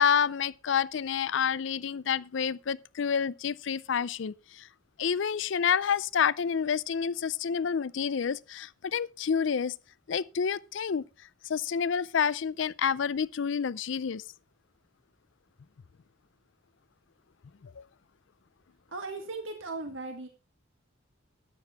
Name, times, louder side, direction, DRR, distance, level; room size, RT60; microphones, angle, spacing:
voice 1, 0.0-4.7 5.0-9.7 10.1-11.0 11.5-14.2 17.6-17.8, left 7 dB, 65° left, 0.4 m, -28 dB
voice 2, 18.9-20.3, right 3 dB, 75° right, 1.7 m, -37 dB
13.0 x 9.3 x 3.5 m
head